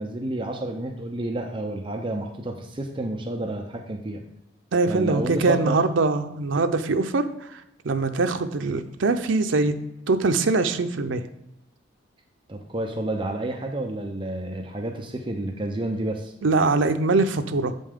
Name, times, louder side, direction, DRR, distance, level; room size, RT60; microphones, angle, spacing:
voice 1, 0.0-4.2 4.9-5.8 12.5-16.3, right 1 dB, 25° right, 3 dB, 0.6 m, -30 dB
voice 2, 4.7-9.7 10.1-11.2 16.4-17.7, right 3 dB, 80° right, 7 dB, 0.6 m, -23 dB
7.5 x 5.3 x 3.6 m, 0.84 s
head